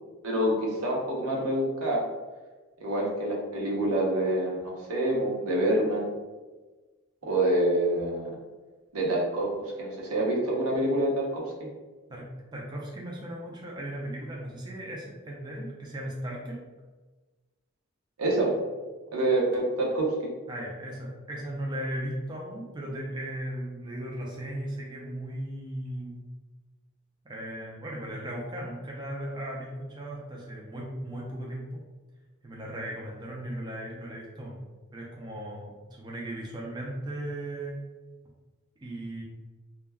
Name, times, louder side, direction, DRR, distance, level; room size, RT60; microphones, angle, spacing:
voice 1, 0.2-2.0 2.8-6.1 7.2-8.3 8.9-11.7 18.2-18.6 19.1-20.3, right 1 dB, 85° right, -2 dB, 0.7 m, -27 dB
voice 2, 12.1-16.6 20.5-26.2 27.2-31.8 32.4-34.6 34.9-37.8 38.8-39.2, right 1 dB, 20° right, -3 dB, 0.4 m, -37 dB
2.2 x 2.2 x 3.3 m, 1.3 s
head